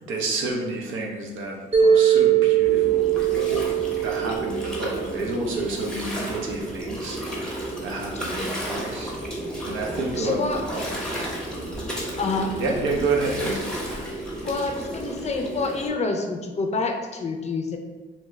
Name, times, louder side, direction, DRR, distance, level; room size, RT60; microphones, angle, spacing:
voice 1, 0.0-3.6 4.0-9.2 9.6-11.3 12.6-13.7, right 3 dB, 80° right, 0 dB, 0.7 m, -30 dB
Mallet percussion, 1.7-5.9, right 9 dB, 30° right, 0.8 m, -21 dB
Gurgling, 2.6-15.9, right 1 dB, 5° left, 0.7 m, -32 dB
voice 2, 10.2-10.6 12.2-12.5 14.4-17.8, left 3 dB, 35° left, 3 dB, 0.4 m, -27 dB
2.8 x 2.3 x 3.1 m, 1.3 s
cardioid pair, 90°, 20 cm